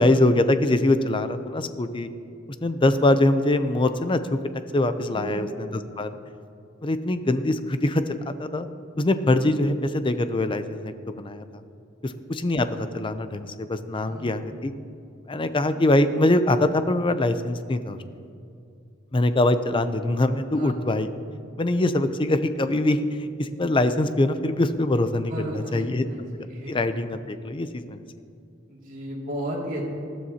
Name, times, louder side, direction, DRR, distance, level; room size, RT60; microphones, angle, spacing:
voice 1, 0.0-2.1 2.6-4.4 4.7-6.1 6.8-8.7 9.0-11.4 12.0-14.7 15.3-18.0 19.1-21.1 21.6-26.1 26.3-28.0, left 1 dB, 25° left, 10 dB, 0.5 m, -23 dB
voice 2, 5.1-5.6 12.0-12.2 14.0-14.3 20.5-20.7 25.2-26.8 28.7-29.8, right 1 dB, 45° right, -3 dB, 2.6 m, -34 dB
19.5 x 12.5 x 2.9 m, 2.5 s
head